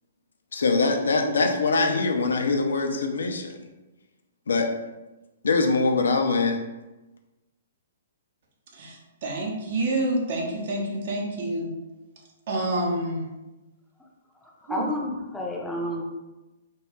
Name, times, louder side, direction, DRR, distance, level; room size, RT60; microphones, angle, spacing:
voice 1, 0.5-3.6 4.5-4.7 5.4-6.6, left 3 dB, 65° left, 4 dB, 0.3 m, -23 dB
voice 2, 8.7-11.7 12.5-13.2 14.7-14.9, right 1 dB, 50° right, -1 dB, 0.6 m, -28 dB
voice 3, 14.6-16.0, left 1 dB, ahead, -3 dB, 0.5 m, -30 dB
2.3 x 2.2 x 2.9 m, 1.1 s
figure-of-eight pair, 120°, 0 cm